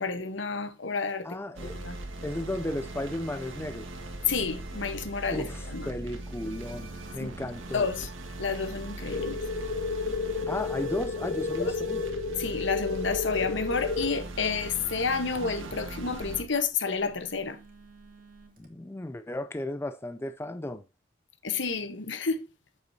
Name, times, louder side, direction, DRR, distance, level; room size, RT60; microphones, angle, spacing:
voice 1, 0.0-1.3 1.6-2.0 4.3-5.9 7.2-7.3 7.7-8.1 8.4-9.4 11.6-11.7 12.4-17.6 21.4-22.4, left 5 dB, 70° left, 1.1 m, -30 dB
voice 2, 1.2-1.8 2.2-3.9 5.3-7.9 10.5-12.1 18.6-20.8, left 1 dB, 10° left, 0.4 m, -34 dB
sound 1, 1.5-16.4, right 2 dB, 80° right, 1.8 m, -40 dB
Telephone, 4.3-18.7, right 3 dB, 45° right, 2.3 m, -55 dB
sound 2, 9.1-14.1, left 4 dB, 50° left, 0.7 m, -32 dB
8.4 x 7.7 x 2.8 m
head